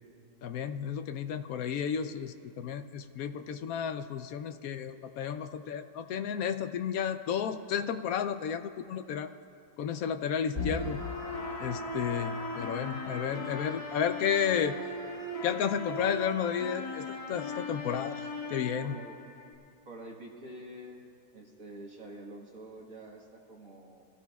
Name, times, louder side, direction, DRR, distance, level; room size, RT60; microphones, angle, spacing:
voice 1, 0.4-9.3 9.8-11.0 11.6-14.8 15.4-19.0, left 8 dB, 70° left, 9 dB, 0.8 m, -32 dB
sound 1, 10.5-19.5, left 2 dB, 25° left, 1.0 m, -38 dB
voice 2, 18.8-19.2 19.9-21.0 21.3-24.1, right 1 dB, 50° right, -1 dB, 1.9 m, -47 dB
25.5 x 16.0 x 2.3 m, 2.5 s
omnidirectional pair, 1.9 m